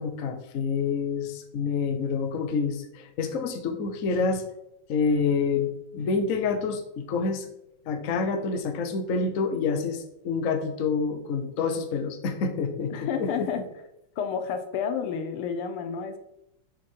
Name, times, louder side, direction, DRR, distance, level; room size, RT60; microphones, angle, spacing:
voice 1, 0.0-4.4 4.9-7.5 7.8-13.5, left 5 dB, 50° left, 5 dB, 1.0 m, -27 dB
voice 2, 12.9-13.6 14.2-16.2, left 6 dB, 80° left, 8 dB, 1.7 m, -30 dB
7.2 x 6.0 x 4.5 m, 0.84 s
omnidirectional pair, 2.4 m